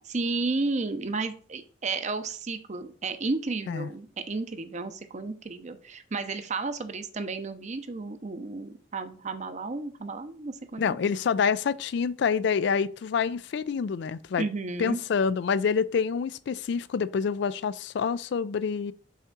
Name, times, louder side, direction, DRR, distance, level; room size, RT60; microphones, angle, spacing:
voice 1, 0.0-11.0 14.4-15.0, right 3 dB, 40° right, 0.7 m, -32 dB
voice 2, 10.8-14.5 14.8-18.9, left 6 dB, 70° left, 0.4 m, -27 dB
5.7 x 3.6 x 5.9 m
head